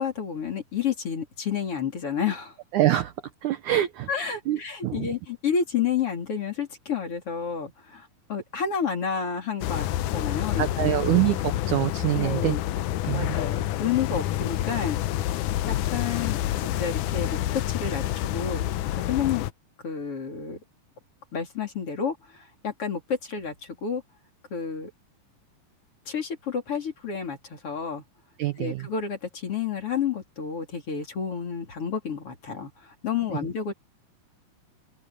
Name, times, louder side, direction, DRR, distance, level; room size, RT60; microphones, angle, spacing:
voice 1, 0.0-2.5 4.1-11.0 12.2-12.6 13.1-16.4 16.6-18.7 19.0-19.4 19.8-20.6 21.3-24.0 24.5-24.9 26.1-28.0 28.6-33.7, left 7 dB, 40° left, 3.7 m, -30 dB
voice 2, 2.7-3.1 3.4-4.1 4.5-5.1 10.6-12.5 13.0-13.4 28.4-28.9, right 14 dB, 75° right, 1.8 m, -25 dB
sound 1, 9.6-19.5, left 13 dB, 85° left, 1.8 m, -28 dB
open air
omnidirectional pair, 4.5 m